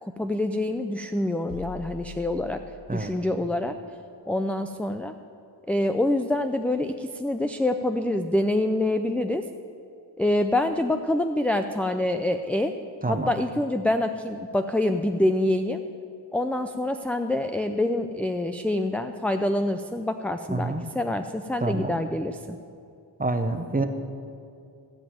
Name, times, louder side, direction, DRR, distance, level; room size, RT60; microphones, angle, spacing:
voice 1, 0.0-2.6 2.9-3.7 4.3-5.1 5.7-9.5 10.2-12.7 13.1-15.8 16.3-22.6, left 1 dB, 5° left, 7 dB, 0.4 m, -26 dB
sound 1, 1.5-3.3, left 7 dB, 45° left, 0.7 m, -43 dB
voice 2, 2.9-3.4 13.0-13.3 20.5-20.9 21.6-21.9 23.2-23.8, right 2 dB, 20° right, 7 dB, 0.9 m, -27 dB
15.5 x 5.3 x 9.1 m, 2.5 s
wide cardioid pair, 75°, 46 cm